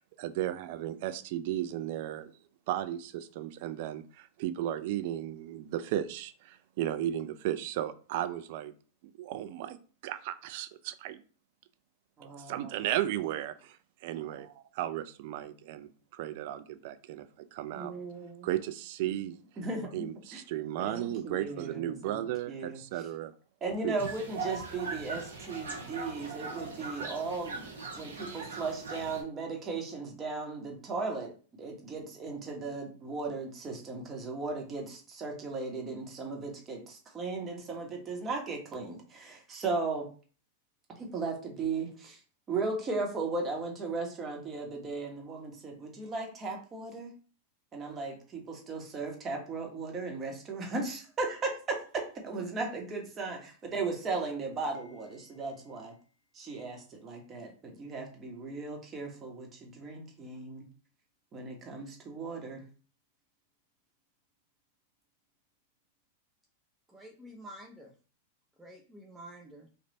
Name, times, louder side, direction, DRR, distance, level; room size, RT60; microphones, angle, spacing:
voice 1, 0.0-2.3 2.7-8.7 9.2-9.8 10.0-11.2 12.4-17.9 18.4-19.4 19.9-23.3 23.8-24.0, right 12 dB, 60° right, 11 dB, 0.4 m, -35 dB
voice 2, 12.2-12.6 17.7-18.5 19.0-19.2 19.6-20.1 20.3-20.4 20.8-22.8 23.6-27.7 28.0-31.3 31.6-40.1 41.0-42.2 42.5-47.1 47.7-55.9 56.3-60.7 61.3-62.6, right 3 dB, 25° right, 1 dB, 1.3 m, -36 dB
sound 1, 24.0-29.2, right 3 dB, 90° right, 1.1 m, -40 dB
voice 3, 66.9-67.9 68.6-69.7, right 1 dB, 10° right, -1 dB, 0.7 m, -49 dB
3.3 x 2.5 x 4.0 m, 0.39 s
hypercardioid pair, 105°, 0 cm